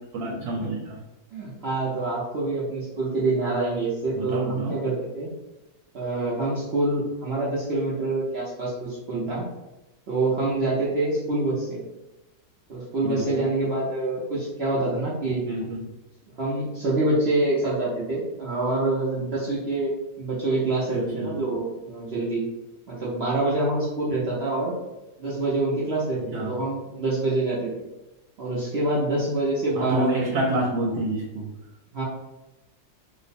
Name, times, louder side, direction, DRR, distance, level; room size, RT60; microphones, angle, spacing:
voice 1, 0.1-1.0 4.1-4.8 13.0-13.5 15.5-15.8 20.9-21.4 26.3-26.5 29.8-31.5, right 1 dB, 80° right, -2 dB, 1.3 m, -28 dB
voice 2, 1.3-5.3 5.9-9.5 10.1-11.8 12.7-15.4 16.4-22.4 22.9-24.7 25.2-27.7 28.4-30.3 31.9-32.0, right 2 dB, 65° right, -6 dB, 0.6 m, -26 dB
3.0 x 2.0 x 4.1 m, 0.99 s
omnidirectional pair, 2.0 m